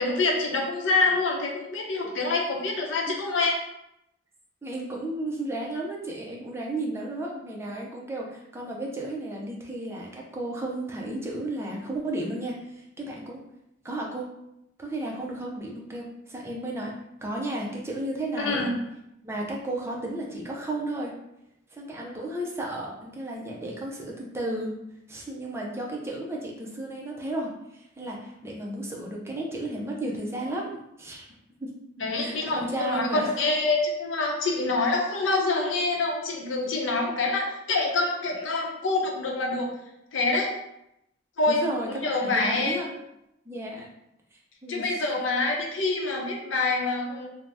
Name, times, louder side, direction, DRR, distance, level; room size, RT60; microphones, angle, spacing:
voice 1, 0.0-3.5 18.4-18.7 32.0-39.7 40.1-40.5 41.4-41.6 42.0-42.8 44.7-47.3, left 3 dB, 80° left, 0 dB, 0.6 m, -26 dB
voice 2, 4.6-13.4 13.8-14.3 14.8-18.7 19.2-21.2 21.7-24.8 25.1-31.3 31.6-31.7 32.2-33.3 36.7-36.8 41.5-43.0 43.5-43.9 44.6-45.0, right 1 dB, 15° right, -2 dB, 0.4 m, -33 dB
2.7 x 2.0 x 3.3 m, 0.83 s
head